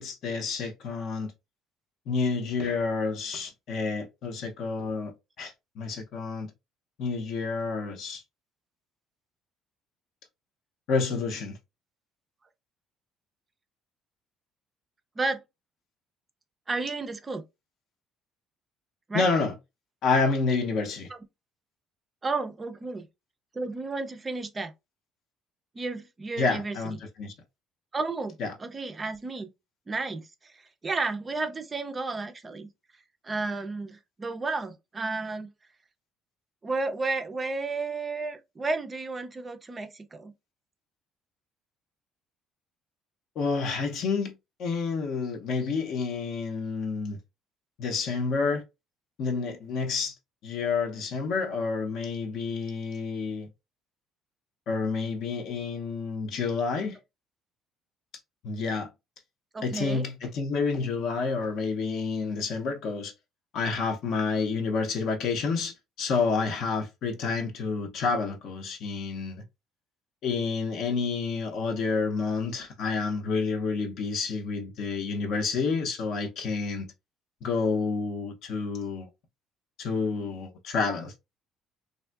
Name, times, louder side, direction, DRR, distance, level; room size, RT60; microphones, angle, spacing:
voice 1, 0.0-1.3 2.1-6.5 7.0-8.2 10.9-11.6 19.1-19.5 20.0-21.1 26.4-27.3 28.4-28.5 43.4-44.3 44.6-47.2 47.8-48.6 49.2-50.1 50.4-53.5 54.7-57.0 58.4-58.9 59.6-63.1 63.5-69.4 70.2-76.9 77.4-79.1 79.8-81.1, left 4 dB, 50° left, 0.6 m, -29 dB
voice 2, 16.7-17.4 19.1-19.3 22.2-23.1 23.5-24.7 25.8-27.0 27.9-29.5 29.9-30.5 30.8-32.7 33.2-35.5 36.6-40.3 59.5-60.1, right 3 dB, 15° right, 0.4 m, -32 dB
3.5 x 2.5 x 2.2 m
cardioid pair, 175°, 0 cm